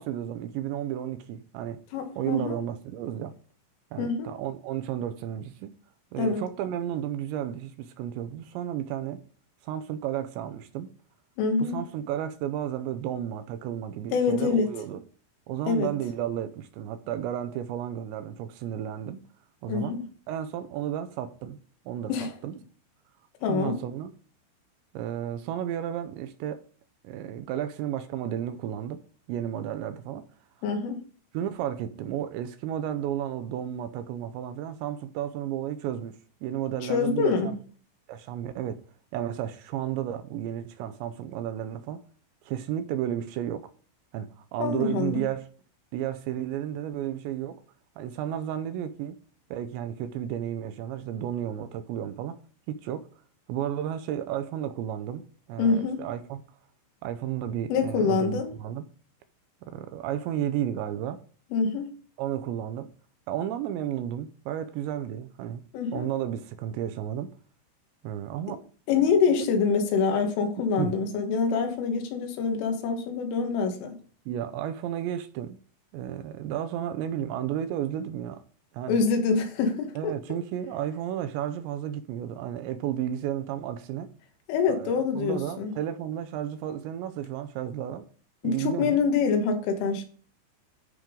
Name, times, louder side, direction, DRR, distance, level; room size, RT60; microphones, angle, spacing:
voice 1, 0.0-1.8 2.2-3.3 3.9-5.7 6.1-9.2 9.6-10.9 11.6-15.0 15.5-19.2 19.6-20.0 20.3-21.6 21.9-22.6 23.4-24.1 24.9-26.6 27.0-29.0 29.3-30.3 31.3-37.5 38.1-38.8 39.1-42.0 42.4-43.7 44.1-45.5 45.9-47.6 48.0-49.2 49.5-52.4 52.7-53.1 53.5-56.4 57.0-58.9 59.7-61.2 62.2-62.9 63.3-65.6 65.9-67.3 68.0-68.6 70.8-71.0 74.3-75.6 75.9-78.4 78.7-79.0 80.0-84.1 84.7-88.1 88.4-89.0, right 10 dB, 80° right, 2.7 m, -32 dB
voice 2, 1.9-2.6 4.0-4.3 6.2-6.4 11.4-11.8 14.1-14.7 15.7-15.9 19.7-20.1 22.1-22.3 23.4-23.8 30.6-31.0 36.9-37.6 44.6-45.3 55.6-56.0 57.7-58.5 61.5-61.9 65.7-66.1 68.9-74.0 78.9-80.1 84.5-85.7 88.4-90.1, left 5 dB, 85° left, 4.0 m, -25 dB
13.0 x 5.2 x 3.7 m
omnidirectional pair, 5.5 m